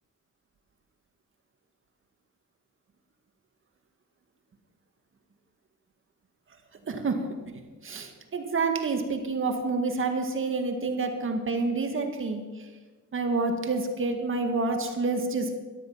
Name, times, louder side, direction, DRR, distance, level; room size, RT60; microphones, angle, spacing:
voice 1, 6.9-12.4 13.1-15.5, right 3 dB, 40° right, 5 dB, 1.9 m, -28 dB
13.0 x 12.5 x 5.7 m, 1.3 s
cardioid pair, 90°, 30 cm